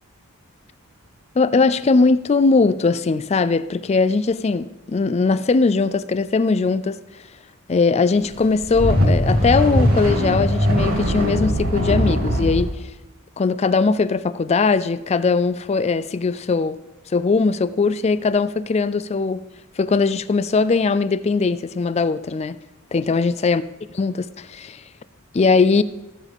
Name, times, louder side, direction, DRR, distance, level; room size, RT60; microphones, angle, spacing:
voice 1, 1.4-7.0 7.7-12.7 13.4-16.8 17.1-19.4 19.8-22.6 22.9-23.6 23.9-24.8 25.3-25.8, left 4 dB, 30° left, 0.3 m, -20 dB
sound 1, 8.4-12.7, equal, 85° right, 3.2 m, -20 dB
17.0 x 7.2 x 3.5 m
head